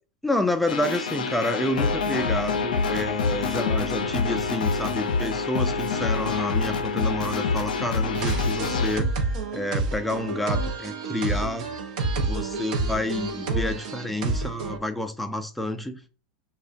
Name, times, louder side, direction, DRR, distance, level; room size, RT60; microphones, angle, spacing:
voice 1, 0.2-9.1 9.5-11.7 12.2-16.0, left 1 dB, ahead, 0.3 m, -29 dB
sound 1, 0.7-9.0, left 4 dB, 85° left, 0.4 m, -26 dB
sound 2, 8.2-14.8, right 3 dB, 70° right, 0.5 m, -28 dB
2.3 x 2.2 x 2.4 m
hypercardioid pair, 100°, 4 cm